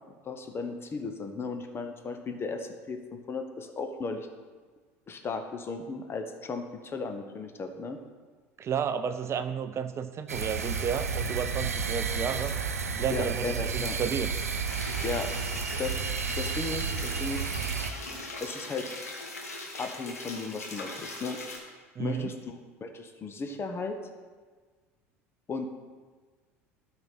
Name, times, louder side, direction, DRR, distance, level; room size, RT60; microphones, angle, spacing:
voice 1, 0.2-4.3 5.1-8.0 13.1-14.0 15.0-15.3 15.7-16.0 16.3-17.5 18.4-18.9 19.8-21.4 22.0-24.0 25.5-25.7, left 4 dB, 30° left, 6 dB, 1.2 m, -35 dB
voice 2, 8.6-12.5 12.9-14.3 22.0-22.3, right 7 dB, 35° right, 10 dB, 0.5 m, -32 dB
sound 1, 10.3-17.9, right 5 dB, 90° right, 0.6 m, -31 dB
sound 2, 14.7-21.6, left 2 dB, 85° left, 1.5 m, -40 dB
12.0 x 4.8 x 5.9 m, 1.5 s
hypercardioid pair, 70°, 8 cm